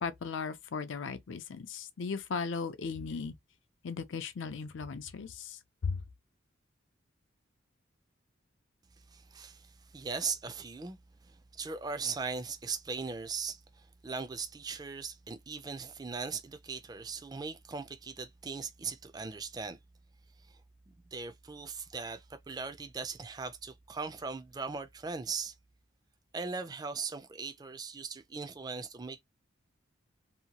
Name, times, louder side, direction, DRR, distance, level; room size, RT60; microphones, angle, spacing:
voice 1, 0.0-3.3 3.8-6.0, left 5 dB, 70° left, 0.5 m, -37 dB
voice 2, 9.1-19.8 20.5-20.6 20.9-25.6 26.3-29.2, right 5 dB, 20° right, 0.3 m, -39 dB
2.8 x 2.2 x 2.8 m
head